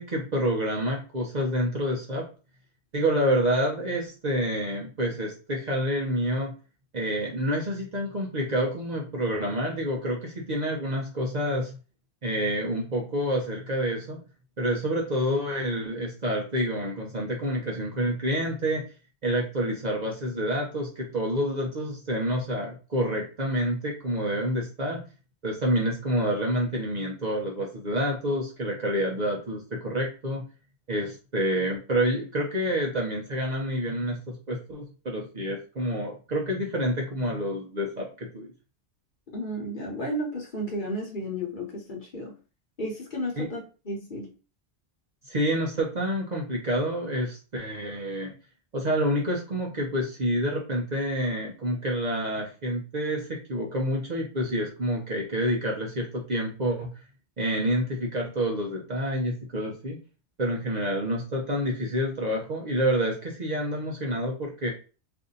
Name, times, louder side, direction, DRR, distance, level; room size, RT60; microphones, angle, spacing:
voice 1, 0.0-2.3 2.9-6.5 6.9-11.8 12.2-14.2 14.6-18.8 19.2-25.0 25.4-30.4 30.9-38.1 38.3-38.5 43.4-43.5 45.2-48.3 48.7-56.9 57.4-60.0 60.4-64.7, equal, 45° right, -2 dB, 0.7 m, -28 dB
voice 2, 39.3-42.3 42.8-44.3, equal, 45° left, -1 dB, 1.0 m, -33 dB
2.7 x 2.6 x 3.8 m, 0.35 s
omnidirectional pair, 1.2 m